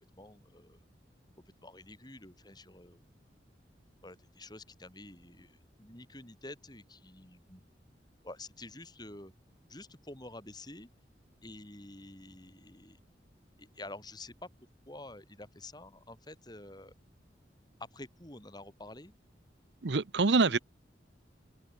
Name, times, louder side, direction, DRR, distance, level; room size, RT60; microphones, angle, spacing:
voice 1, 0.2-0.8 1.6-3.1 4.0-7.6 8.2-9.3 9.7-10.9 11.4-13.0 13.6-14.5 14.9-16.9 17.9-19.1 20.4-20.6, left 2 dB, 25° left, 6.4 m, -49 dB
voice 2, 19.8-20.6, right 4 dB, 75° right, 0.8 m, -25 dB
head